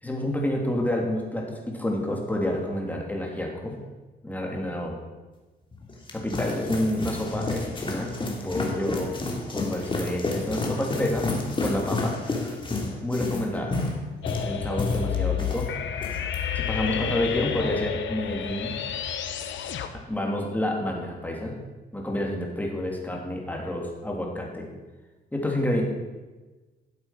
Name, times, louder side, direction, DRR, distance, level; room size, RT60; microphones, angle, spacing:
voice 1, 0.0-3.8 4.2-5.0 6.1-9.1 9.5-11.3 11.6-12.6 13.0-13.7 14.4-15.7 16.0-16.1 16.5-18.7 19.9-21.5 21.9-24.7 25.3-25.8, left 1 dB, 10° left, -1 dB, 3.0 m, -29 dB
sound 1, 5.7-15.7 16.0-16.4, left 2 dB, 25° left, 2.5 m, -30 dB
sound 2, 14.2-19.9, left 8 dB, 70° left, 1.1 m, -30 dB
12.5 x 7.7 x 5.9 m, 1.2 s
cardioid pair, 90°, 20 cm